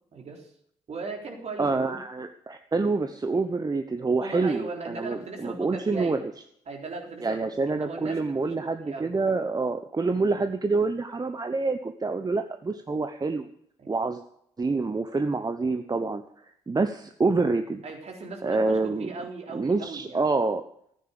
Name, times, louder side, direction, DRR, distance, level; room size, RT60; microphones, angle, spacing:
voice 1, 0.1-0.5 0.9-2.0 4.2-6.2 6.7-9.1 10.2-10.4 13.8-13.9 17.8-20.3, right 4 dB, 50° right, 1 dB, 3.8 m, -38 dB
voice 2, 1.6-6.3 7.2-13.5 13.9-14.2 14.6-17.8 18.4-19.1 19.5-20.7, right 3 dB, 25° right, 8 dB, 1.0 m, -27 dB
14.0 x 9.5 x 6.9 m, 0.70 s
hypercardioid pair, 45°, 14 cm